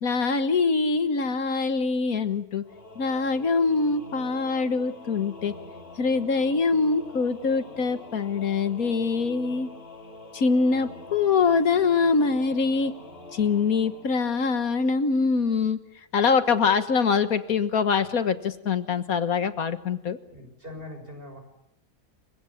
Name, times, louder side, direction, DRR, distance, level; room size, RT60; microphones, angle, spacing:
voice 1, 0.0-2.6 3.0-5.5 6.0-9.7 10.3-12.9 13.3-15.8 16.1-20.2, left 5 dB, 75° left, 10 dB, 1.8 m, -24 dB
Singing / Musical instrument, 2.6-15.1, left 2 dB, 40° left, 3.4 m, -45 dB
voice 2, 20.3-21.4, left 1 dB, 35° right, 5 dB, 6.9 m, -41 dB
29.5 x 24.5 x 7.3 m, 0.78 s
omnidirectional pair, 1.6 m